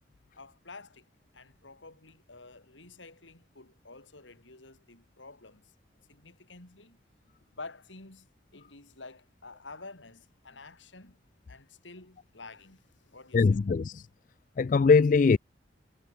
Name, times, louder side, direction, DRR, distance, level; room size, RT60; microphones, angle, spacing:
voice 1, 0.3-5.7 6.1-7.0 7.5-8.3 8.5-11.2 11.5-13.7, left 3 dB, 90° left, 4.4 m, -49 dB
voice 2, 13.3-14.0 14.6-15.4, left 4 dB, 45° left, 0.3 m, -21 dB
head